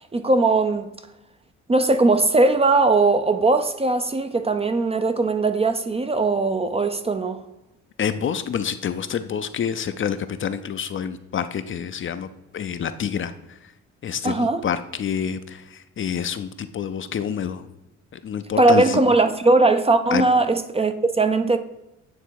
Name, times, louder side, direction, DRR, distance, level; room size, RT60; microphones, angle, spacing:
voice 1, 0.1-0.9 1.7-7.4 14.2-14.6 18.6-21.6, right 3 dB, 20° right, 0.5 m, -19 dB
voice 2, 8.0-13.3 14.0-17.6 18.1-19.0 20.1-20.3, left 8 dB, 40° left, 0.5 m, -27 dB
9.0 x 3.3 x 4.7 m
cardioid pair, 90°, 30 cm